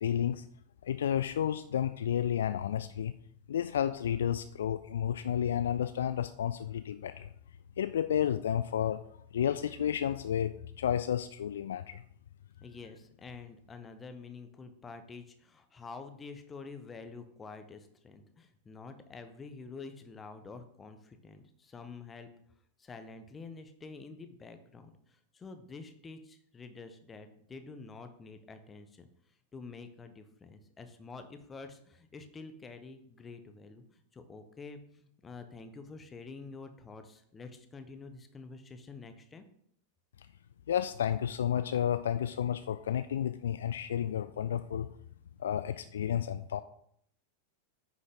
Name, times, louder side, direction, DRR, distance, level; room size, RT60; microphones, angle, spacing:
voice 1, 0.0-0.4 0.8-3.1 3.5-7.3 7.8-9.0 9.3-12.0 40.7-44.9 45.4-46.6, left 9 dB, 65° left, 11 dB, 0.3 m, -31 dB
voice 2, 12.6-22.3 22.8-29.1 29.5-39.4, left 4 dB, 20° left, 8 dB, 1.1 m, -48 dB
9.4 x 6.3 x 3.8 m, 0.68 s
figure-of-eight pair, 90°, 0 cm